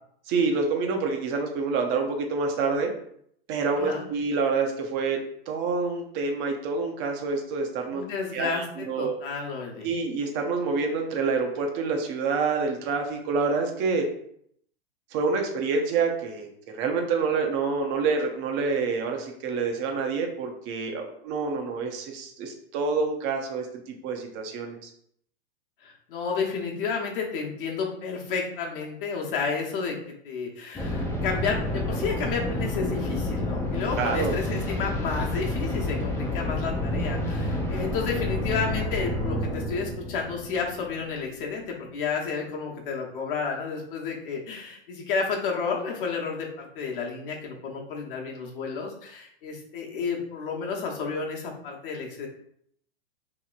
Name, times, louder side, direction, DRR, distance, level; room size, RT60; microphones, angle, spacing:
voice 1, 0.3-2.9 3.5-8.0 8.3-9.1 9.8-14.1 15.1-16.5 16.7-24.9 34.0-34.4, right 4 dB, 35° right, 3 dB, 0.6 m, -27 dB
voice 2, 3.8-4.1 7.9-9.9 25.8-52.3, left 5 dB, 60° left, -1 dB, 0.9 m, -31 dB
sound 1, 30.8-41.5, left 1 dB, 10° left, 0.4 m, -29 dB
2.9 x 2.8 x 2.4 m, 0.68 s
hypercardioid pair, 110°, 31 cm